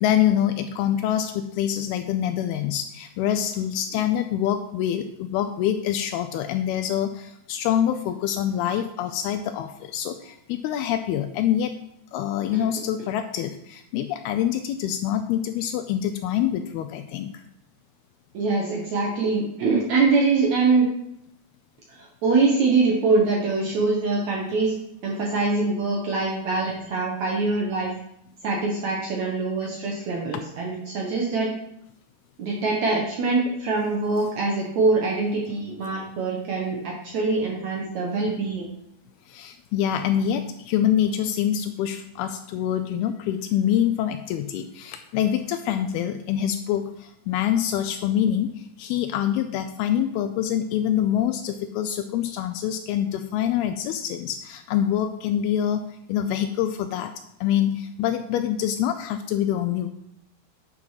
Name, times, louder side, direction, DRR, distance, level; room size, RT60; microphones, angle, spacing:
voice 1, 0.0-11.8 12.1-17.3 39.3-55.8 56.1-57.1 57.4-59.9, left 10 dB, 80° left, 9 dB, 2.3 m, -25 dB
voice 2, 18.3-20.9 22.0-24.7 25.0-27.9 28.4-31.5 32.4-38.7, right 3 dB, 65° right, -1 dB, 1.8 m, -23 dB
9.0 x 5.9 x 5.7 m, 0.78 s
omnidirectional pair, 4.8 m